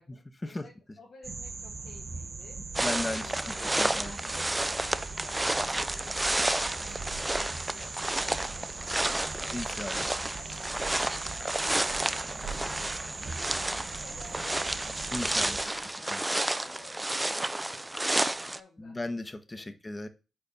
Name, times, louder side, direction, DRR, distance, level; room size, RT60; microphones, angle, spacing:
voice 1, 0.0-11.7 12.2-15.0 15.3-19.1 19.5-19.8, left 3 dB, 65° left, -2 dB, 1.5 m, -54 dB
sound 1, 1.2-15.6, right 3 dB, 50° right, 1.7 m, -41 dB
sound 2, 2.7-18.6, right 1 dB, 15° right, 0.5 m, -31 dB
voice 2, 2.8-4.2 9.5-10.1 15.1-15.6 16.1-16.2 18.8-20.1, left 2 dB, 25° left, 10 dB, 1.0 m, -36 dB
Walk footsteps, 6.2-15.8, right 6 dB, 85° right, 1.1 m, -49 dB
4.6 x 4.5 x 5.3 m, 0.31 s
supercardioid pair, 45°, 0 cm